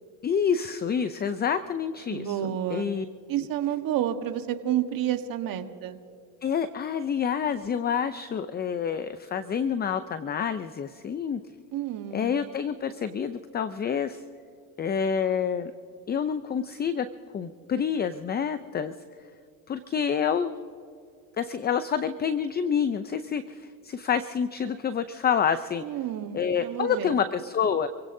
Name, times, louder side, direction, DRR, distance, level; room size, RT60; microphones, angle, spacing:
voice 1, 0.2-3.1 6.4-11.4 12.1-14.2 14.8-15.7 16.1-17.1 17.3-18.9 19.7-20.5 21.4-25.8 26.3-27.9, left 7 dB, 25° left, 12 dB, 0.5 m, -28 dB
voice 2, 2.1-2.9 3.3-6.0 11.7-12.3 25.8-27.1, right 11 dB, 50° right, 7 dB, 1.4 m, -30 dB
28.0 x 16.5 x 2.7 m, 2.4 s
supercardioid pair, 100°, 43 cm